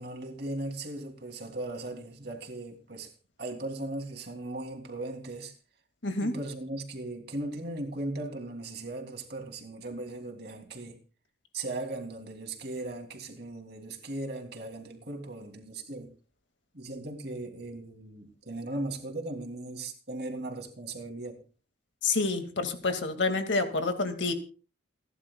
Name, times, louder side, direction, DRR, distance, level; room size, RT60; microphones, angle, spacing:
voice 1, 0.0-3.1 3.4-5.6 6.2-11.0 11.5-16.1 16.7-21.4, right 2 dB, 55° right, 2.9 m, -38 dB
voice 2, 22.0-24.3, left 3 dB, 65° left, 2.2 m, -28 dB
30.0 x 11.0 x 2.3 m
head